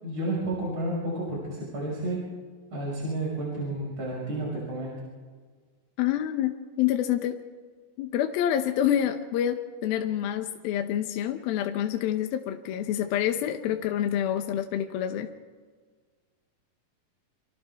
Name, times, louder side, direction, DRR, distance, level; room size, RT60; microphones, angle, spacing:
voice 1, 0.0-2.2 2.7-5.0, right 1 dB, 35° right, -4 dB, 6.5 m, -31 dB
voice 2, 6.0-7.4 8.0-15.3, left 10 dB, 80° left, 5 dB, 2.7 m, -27 dB
30.0 x 26.5 x 3.5 m, 1.5 s
omnidirectional pair, 4.3 m